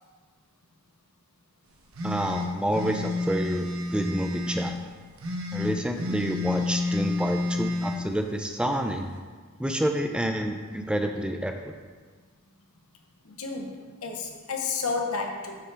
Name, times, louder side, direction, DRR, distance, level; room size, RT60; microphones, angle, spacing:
sound 1, 1.9-4.7 5.2-8.0, left 2 dB, 65° right, 0.9 m, -30 dB
voice 1, 2.0-4.7 5.5-9.1 9.6-11.7, right 1 dB, 5° right, 4 dB, 0.3 m, -29 dB
voice 2, 13.2-15.7, left 4 dB, 75° left, 3 dB, 0.8 m, -32 dB
9.5 x 4.3 x 3.3 m, 1.5 s
head